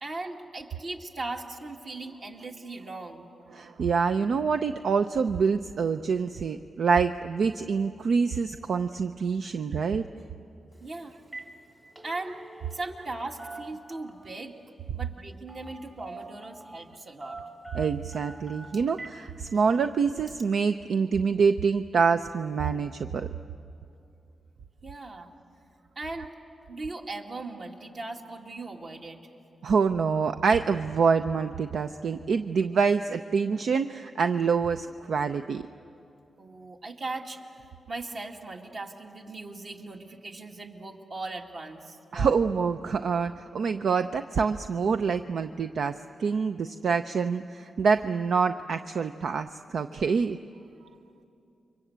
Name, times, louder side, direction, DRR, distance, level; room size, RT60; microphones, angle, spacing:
voice 1, 0.0-3.3 10.8-11.1 12.0-12.4 12.7-14.5 14.9-17.4 24.8-25.3 26.0-26.3 26.7-29.2 36.4-42.3, right 2 dB, 55° right, 1 dB, 2.3 m, -38 dB
voice 2, 3.5-10.0 17.7-23.3 25.1-25.3 29.6-35.6 42.1-50.4, right 5 dB, 75° right, 9 dB, 0.5 m, -26 dB
Telephone, 10.7-10.9 11.2-11.5 11.8-13.1 13.4-14.3 15.5-15.7 16.0-16.7 17.2-19.2 19.6-19.7 20.3-20.4, right 3 dB, 30° right, 2.5 m, -44 dB
29.5 x 24.0 x 8.1 m, 2.7 s
wide cardioid pair, 105°, 0 cm